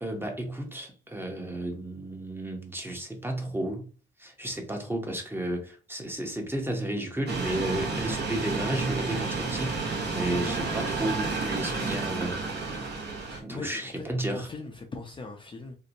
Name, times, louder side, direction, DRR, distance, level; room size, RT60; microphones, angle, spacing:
voice 1, 0.0-3.8 4.2-12.3 13.4-14.5, right 1 dB, 10° right, 0.7 m, -33 dB
sound 1, 7.3-13.4, right 4 dB, 55° right, 0.8 m, -31 dB
voice 2, 13.3-14.0 14.3-15.8, left 3 dB, 25° left, 0.4 m, -40 dB
2.7 x 2.1 x 2.6 m
cardioid pair, 90°, 20 cm